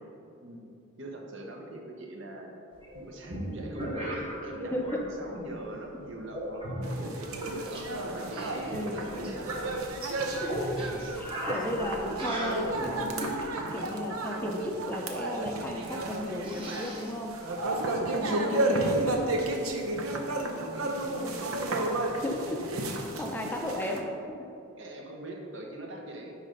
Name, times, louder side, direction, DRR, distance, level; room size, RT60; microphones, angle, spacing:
voice 1, 0.4-0.7 1.0-2.5 2.9-7.9 8.3-9.6 11.0-11.1 17.8-19.8 20.3-21.6 24.8-26.3, right 1 dB, 60° right, 1 dB, 0.9 m, -42 dB
sound 1, 2.8-5.0 5.3-5.8 6.3-7.8 8.1-13.4 15.1-15.2 15.4-15.5 15.8-18.4, equal, 25° right, 1.1 m, -38 dB
voice 2, 4.6-5.1 8.7-9.1 10.4-17.3 18.1-19.2 22.1-22.7 23.0-24.5, left 1 dB, 10° left, 1 dB, 0.4 m, -35 dB
sound 2, 6.8-24.0, right 2 dB, 85° right, 0.7 m, -32 dB
9.3 x 3.2 x 5.2 m, 2.7 s
head